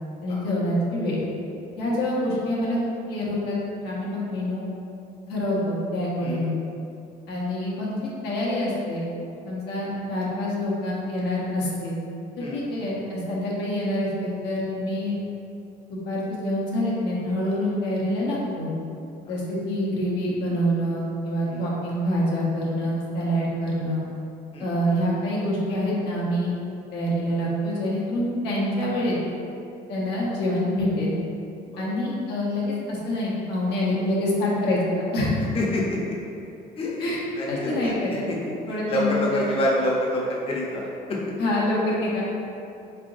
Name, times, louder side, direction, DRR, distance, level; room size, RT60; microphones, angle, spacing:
voice 1, 0.2-1.2 1.8-2.8 3.1-4.6 5.3-6.6 7.3-9.0 9.4-12.0 12.5-15.2 16.1-18.7 19.3-24.0 24.6-26.5 26.9-29.2 29.9-31.1 31.8-35.4 37.0-37.2 37.5-38.2 38.7-39.4 41.4-42.3, left 1 dB, 85° left, -5 dB, 0.9 m, -26 dB
voice 2, 35.5-36.2 36.8-38.4 38.9-41.2, left 1 dB, 35° left, -4 dB, 0.6 m, -27 dB
3.7 x 3.4 x 2.5 m, 2.7 s
cardioid pair, 110°, 17 cm